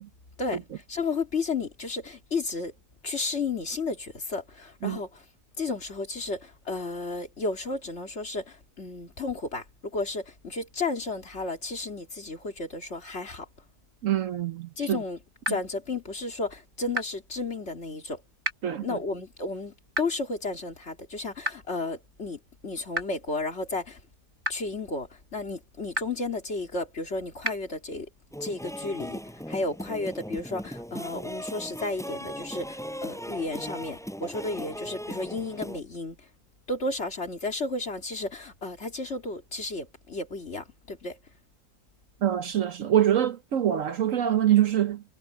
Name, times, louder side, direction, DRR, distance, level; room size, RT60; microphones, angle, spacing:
voice 1, 0.4-2.7 3.0-5.2 5.6-13.5 14.8-15.2 15.5-18.2 18.8-24.0 24.5-28.1 28.4-29.2 29.5-36.2 36.7-41.2, left 3 dB, 40° left, 2.9 m, -33 dB
voice 2, 14.0-15.0 18.6-19.0 42.2-45.0, right 11 dB, 60° right, 1.1 m, -24 dB
sound 1, 15.4-15.5 16.9-17.0 18.4-18.5 19.9-20.0 21.4-21.5 22.9-23.0 24.4-24.5 25.9-26.0 27.4-27.5, equal, 35° right, 3.5 m, -28 dB
sound 2, 28.3-35.8, equal, ahead, 7.1 m, -38 dB
omnidirectional pair, 1.7 m